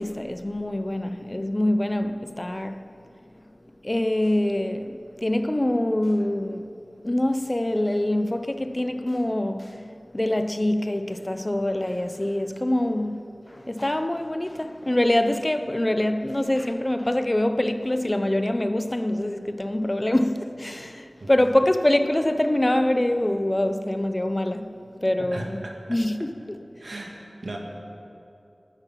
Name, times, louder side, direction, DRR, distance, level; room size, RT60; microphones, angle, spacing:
voice 1, 0.0-2.9 3.8-9.9 10.1-25.6 25.9-26.9, left 1 dB, 30° left, 0.7 m, -25 dB
voice 2, 25.3-25.8 26.8-27.6, right 1 dB, 85° right, 1.9 m, -36 dB
19.5 x 9.1 x 5.9 m
wide cardioid pair, 45°, 0 cm